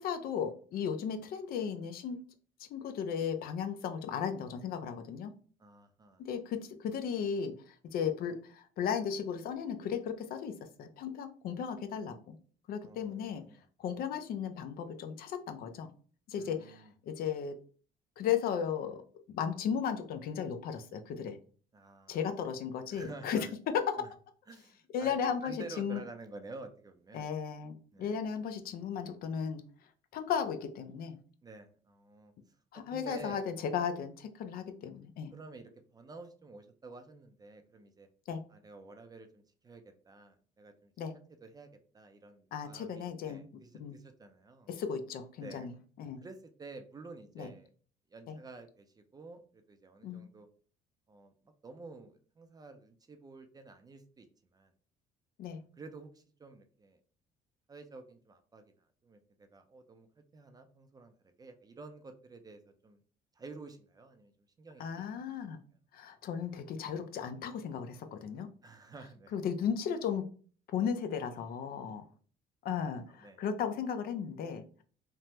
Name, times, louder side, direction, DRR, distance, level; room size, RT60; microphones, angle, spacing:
voice 1, 0.0-2.2 2.6-5.3 6.2-12.4 12.7-13.4 13.8-15.9 16.3-17.6 18.2-21.4 22.1-23.5 24.9-26.0 27.1-29.6 30.1-31.2 32.7-35.3 38.3-38.4 41.0-41.1 42.5-43.4 43.8-44.0 44.7-46.2 47.4-47.5 48.3-48.4 50.0-50.2 55.4-55.6 64.8-65.6 65.9-68.5 69.3-70.2 70.7-72.0 72.6-74.8, left 7 dB, 60° left, 8 dB, 0.5 m, -35 dB
voice 2, 5.6-6.2 12.8-13.6 16.3-16.9 21.7-22.2 22.9-23.5 24.0-24.1 24.5-27.3 27.9-28.2 31.4-32.3 32.7-33.5 35.3-38.1 38.5-40.9 41.4-44.7 45.4-45.7 46.2-47.7 48.1-50.5 51.1-54.3 54.5-54.7 55.8-57.0 57.7-58.7 59.0-60.1 60.3-61.1 61.4-63.0 63.4-64.3 64.6-65.2 68.6-69.3 73.2-73.4, right 3 dB, 20° right, 7 dB, 0.4 m, -50 dB
3.3 x 2.1 x 2.8 m, 0.42 s
cardioid pair, 110°, 17 cm